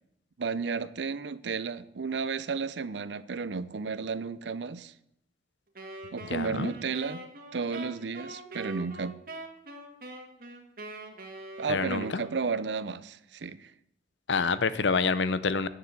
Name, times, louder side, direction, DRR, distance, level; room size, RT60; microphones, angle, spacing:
voice 1, 0.4-4.9 6.1-7.2 7.5-9.2 11.6-13.7, right 5 dB, 80° right, 16 dB, 0.6 m, -33 dB
Wind instrument woodwind instrument, 5.8-12.6, right 2 dB, 50° right, 1.8 m, -44 dB
voice 2, 6.3-6.7 11.7-12.2 14.3-15.7, left 4 dB, 90° left, 14 dB, 0.7 m, -27 dB
9.9 x 6.9 x 7.7 m, 0.75 s
head